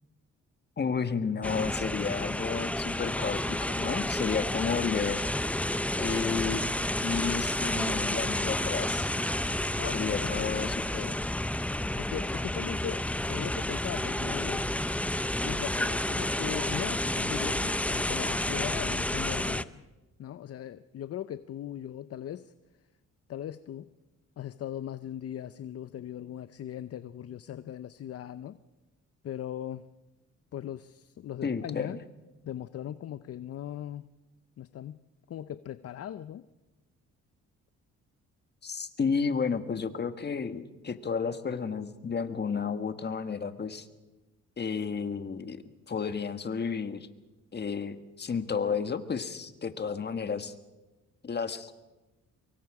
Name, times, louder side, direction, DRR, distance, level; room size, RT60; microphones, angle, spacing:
voice 1, 0.8-5.2 6.0-6.7 7.0-9.1 9.9-11.2 31.4-32.0 38.6-43.9 44.6-47.1 47.5-50.5 51.2-51.7, left 5 dB, 35° left, 10 dB, 1.5 m, -32 dB
sound 1, 1.4-19.6, left 1 dB, 5° left, 0.6 m, -30 dB
voice 2, 9.8-10.7 12.0-14.7 15.4-19.8 20.2-22.5 23.3-23.9 24.4-28.6 29.2-29.9 30.5-32.0 32.4-34.1 34.6-35.0 35.3-36.4, left 10 dB, 55° left, 14 dB, 0.7 m, -39 dB
24.5 x 23.0 x 4.9 m, 1.1 s
cardioid pair, 90°, 30 cm